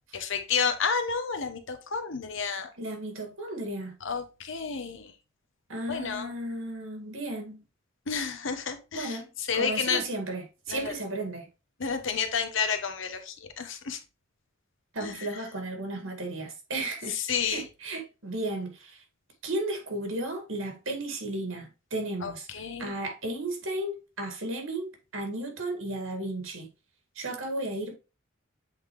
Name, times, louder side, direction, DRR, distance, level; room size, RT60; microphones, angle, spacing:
voice 1, 0.1-2.7 4.0-5.1 5.9-6.3 8.1-9.2 9.5-10.0 10.7-10.9 11.8-14.0 15.0-15.1 17.3-17.6 22.2-22.9, left 6 dB, 70° left, 1.0 m, -30 dB
voice 2, 2.8-3.9 5.7-7.6 8.9-9.3 9.5-11.5 14.9-19.0 19.4-22.5 22.8-26.7 27.2-28.0, right 2 dB, 75° right, 2.0 m, -34 dB
7.8 x 3.9 x 3.1 m
head